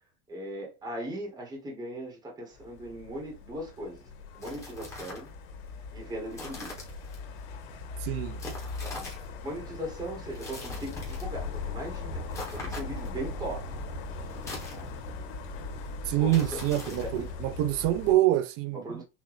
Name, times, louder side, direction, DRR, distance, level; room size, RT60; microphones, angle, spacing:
voice 1, 0.3-4.1 4.4-5.3 5.9-6.7 8.8-13.7 14.7-14.9 16.1-17.3 18.7-19.0, right 1 dB, 10° right, 1.3 m, -39 dB
sound 1, 2.5-18.1, left 3 dB, 75° left, 2.2 m, -39 dB
sound 2, 4.3-5.3 6.3-7.2 8.4-9.3 10.3-11.3 12.3-13.2 14.3-15.2 16.3-17.3, left 2 dB, 10° left, 1.3 m, -43 dB
voice 2, 8.0-8.4 16.1-19.0, right 14 dB, 45° right, 0.6 m, -26 dB
6.2 x 2.5 x 3.4 m
cardioid pair, 180°, 33 cm